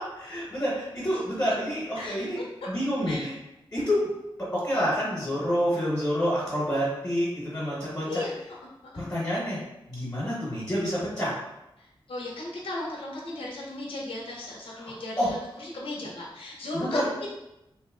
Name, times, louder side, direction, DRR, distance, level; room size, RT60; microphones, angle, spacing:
voice 1, 0.0-3.3 3.7-4.1 4.4-8.2 9.0-9.6 9.9-11.3 14.7-14.9 15.2-15.3 16.7-17.1, equal, 25° left, -7 dB, 1.1 m, -28 dB
voice 2, 12.1-17.3, left 2 dB, 70° left, -3 dB, 0.7 m, -36 dB
2.7 x 2.1 x 3.6 m, 0.90 s
wide cardioid pair, 80°, 9 cm